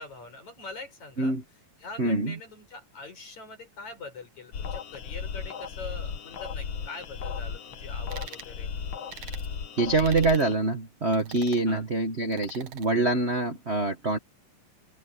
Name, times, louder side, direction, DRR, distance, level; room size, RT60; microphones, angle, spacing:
voice 1, 0.0-1.3 1.8-8.7 11.7-11.8, left 3 dB, 70° left, 7.9 m, -43 dB
voice 2, 2.0-2.4 9.8-14.2, right 2 dB, 40° right, 1.0 m, -25 dB
sound 1, 4.5-10.5, left 6 dB, 55° left, 1.6 m, -36 dB
sound 2, 8.1-8.5 9.1-9.5 10.0-10.5 11.1-11.7 12.3-12.9, right 10 dB, 70° right, 2.5 m, -44 dB
open air
omnidirectional pair, 3.3 m